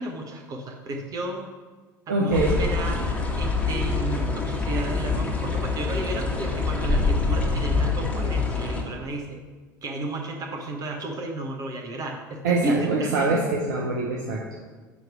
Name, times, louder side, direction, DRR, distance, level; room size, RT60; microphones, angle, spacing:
voice 1, 0.0-1.5 2.1-3.0 3.4-9.4 9.8-13.4, right 2 dB, 35° right, 2 dB, 1.0 m, -32 dB
voice 2, 2.1-2.6 12.4-14.6, right 2 dB, 65° right, 0 dB, 0.8 m, -24 dB
sound 1, 2.3-8.8, left 3 dB, 10° left, 1.5 m, -25 dB
9.4 x 3.2 x 6.0 m, 1.4 s
figure-of-eight pair, 70°, 11 cm